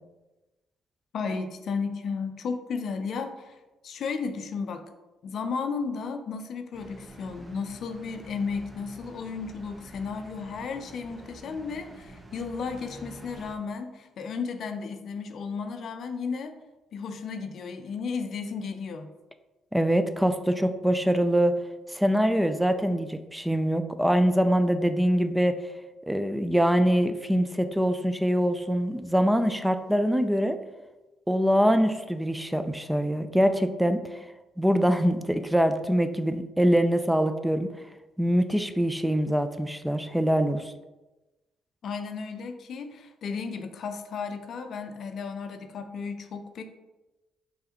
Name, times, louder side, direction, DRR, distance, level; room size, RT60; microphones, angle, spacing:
voice 1, 1.1-3.6 3.8-4.8 5.2-16.6 16.9-19.1 41.8-46.6, left 5 dB, 60° left, 7 dB, 0.4 m, -34 dB
sound 1, 6.7-13.6, right 1 dB, 25° right, 0.8 m, -47 dB
voice 2, 19.7-21.5 21.9-25.6 26.1-30.6 31.3-34.0 34.6-37.7 38.2-40.7, equal, 5° right, 9 dB, 0.4 m, -24 dB
5.5 x 3.2 x 2.8 m, 1.1 s
hypercardioid pair, 45°, 0 cm